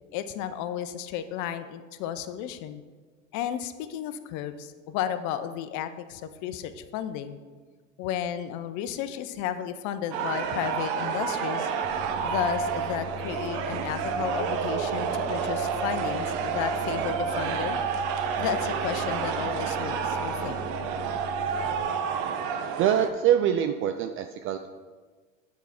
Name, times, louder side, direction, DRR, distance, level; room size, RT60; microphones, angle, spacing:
voice 1, 0.1-2.8 3.3-7.4 8.0-11.7 12.2-17.8 18.4-20.5, left 10 dB, 50° left, 10 dB, 0.7 m, -33 dB
sound 1, 10.1-23.1, right 6 dB, 55° right, 0.9 m, -29 dB
sound 2, 11.8-21.8, left 3 dB, 30° left, 1.1 m, -41 dB
voice 2, 22.8-24.7, right 9 dB, 35° right, 7 dB, 0.4 m, -24 dB
8.1 x 4.7 x 4.3 m, 1.4 s
hypercardioid pair, 75°, 38 cm